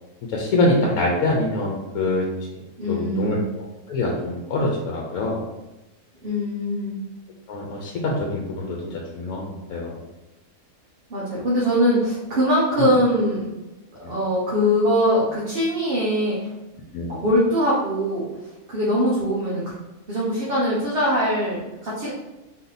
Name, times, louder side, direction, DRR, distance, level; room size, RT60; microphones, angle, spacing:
voice 1, 0.3-2.3 2.9-5.4 7.5-10.0 12.8-12.9 14.0-14.1 16.9-17.1, left 2 dB, 80° left, -1 dB, 1.1 m, -25 dB
voice 2, 2.8-3.5 6.2-7.0 11.1-13.5 14.1-16.5 17.1-18.2 18.7-19.6 20.1-22.1, equal, 45° right, -7 dB, 1.1 m, -22 dB
4.0 x 2.8 x 4.0 m, 1.0 s
omnidirectional pair, 1.5 m